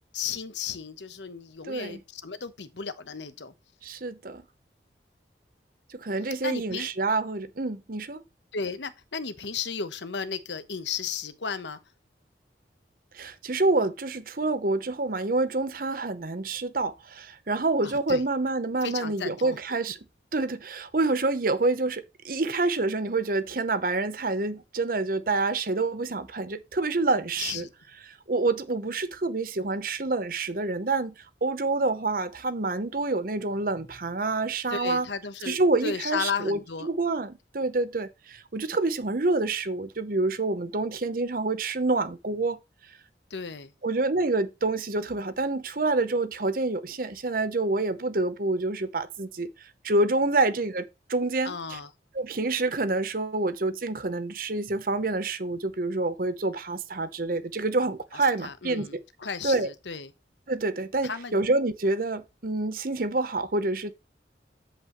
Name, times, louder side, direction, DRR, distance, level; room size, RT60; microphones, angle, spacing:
voice 1, 0.1-3.5 6.3-6.9 8.5-11.8 17.8-18.2 18.8-19.6 27.4-27.7 34.7-35.6 35.8-36.9 43.3-43.7 51.4-51.9 58.4-60.1 61.0-61.4, left 5 dB, 85° left, 1.1 m, -34 dB
voice 2, 1.7-2.0 3.8-4.4 5.9-8.2 13.1-20.0 20.3-27.6 28.1-31.1 31.4-35.1 35.4-42.6 43.8-49.5 49.8-51.8 52.1-58.9 59.4-59.7 60.5-63.9, right 3 dB, 50° right, 0.9 m, -27 dB
8.0 x 8.0 x 3.1 m
head